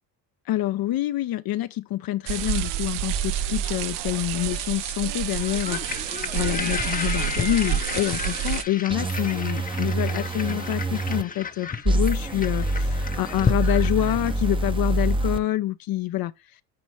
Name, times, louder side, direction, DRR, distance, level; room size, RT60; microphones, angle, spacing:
voice 1, 0.5-16.3, left 14 dB, 50° left, 0.7 m, -27 dB
sound 1, 2.3-8.6, right 11 dB, 65° right, 0.8 m, -28 dB
sound 2, 5.3-14.7, left 5 dB, 20° left, 0.8 m, -33 dB
sound 3, 8.9-11.2 11.8-15.4, right 2 dB, 10° right, 0.7 m, -25 dB
9.6 x 4.1 x 3.1 m
supercardioid pair, 80°, 45 cm